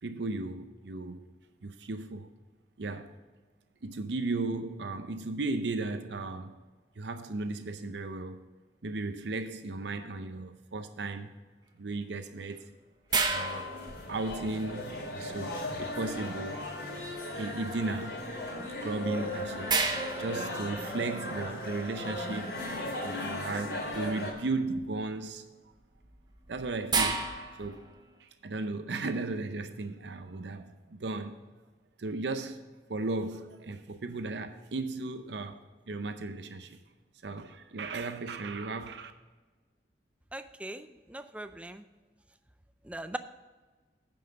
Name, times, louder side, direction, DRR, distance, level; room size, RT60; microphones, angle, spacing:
voice 1, 0.0-1.2 1.6-2.3 2.8-3.1 3.8-6.6 7.0-8.4 8.8-11.3 11.8-12.7 13.3-13.7 14.1-16.7 17.3-18.3 18.8-19.8 20.2-22.7 23.0-25.4 26.5-27.2 27.6-27.9 28.2-31.4 32.0-32.6 32.9-35.6 35.9-36.8 37.2-39.1, right 3 dB, 80° right, 0.6 m, -35 dB
sound 1, 13.1-24.3, left 1 dB, 70° left, 3.3 m, -37 dB
sound 2, 13.1-14.7 18.8-18.9 19.7-21.3 23.9-24.3 24.7-25.1 26.0-28.0, right 4 dB, 25° right, 0.8 m, -32 dB
voice 2, 40.3-41.8 42.9-43.2, right 1 dB, 5° right, 0.4 m, -40 dB
9.6 x 5.5 x 6.7 m
head